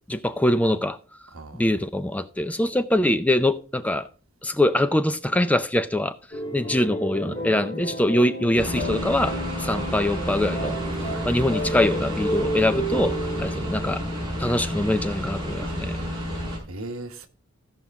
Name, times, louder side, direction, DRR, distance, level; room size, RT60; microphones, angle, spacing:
voice 1, 0.1-1.0 1.5-4.1 4.4-6.1 6.5-9.3 9.6-10.8 11.3-14.0 14.4-16.0, left 1 dB, 5° left, 0.4 m, -23 dB
voice 2, 1.3-1.7 11.0-11.7 15.9-16.4 16.7-17.3, right 2 dB, 70° right, 1.2 m, -39 dB
sound 1, 6.3-15.0, right 1 dB, 25° left, 2.6 m, -32 dB
sound 2, 8.5-16.6, equal, 20° right, 4.4 m, -30 dB
15.5 x 5.6 x 3.6 m
head